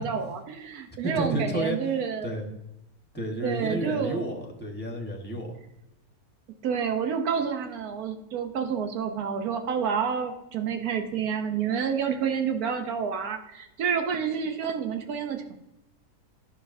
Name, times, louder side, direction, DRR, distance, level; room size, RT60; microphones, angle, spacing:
voice 1, 0.0-2.3 3.4-4.3 6.6-15.6, right 7 dB, 90° right, 6 dB, 1.3 m, -29 dB
voice 2, 1.0-1.8 2.2-2.5 3.1-5.5, right 1 dB, 10° left, 1 dB, 1.1 m, -31 dB
11.0 x 6.3 x 2.6 m, 0.88 s
omnidirectional pair, 1.5 m